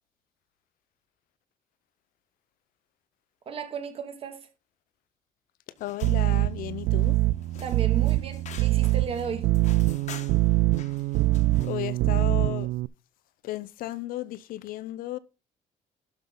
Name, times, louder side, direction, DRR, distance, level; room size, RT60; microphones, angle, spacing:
voice 1, 3.5-4.5 7.6-9.5, right 6 dB, 40° right, 2.3 m, -35 dB
voice 2, 5.8-7.2 11.6-12.7 13.4-15.2, left 14 dB, 75° left, 0.7 m, -34 dB
sound 1, 5.8-11.9, left 8 dB, 55° left, 1.4 m, -48 dB
sound 2, 6.0-12.9, right 17 dB, 75° right, 0.4 m, -24 dB
12.0 x 6.0 x 3.8 m
cardioid pair, 160°, 15 cm